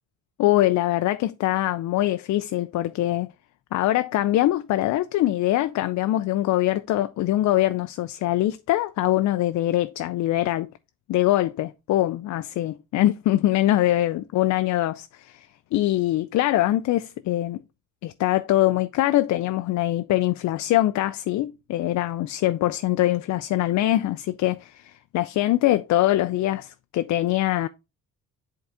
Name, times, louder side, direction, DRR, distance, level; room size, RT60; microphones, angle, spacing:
voice 1, 0.4-3.3 3.7-10.7 11.1-17.6 18.0-27.7, left 15 dB, 70° left, 0.4 m, -23 dB
7.9 x 3.8 x 3.4 m
cardioid pair, 90°, 30 cm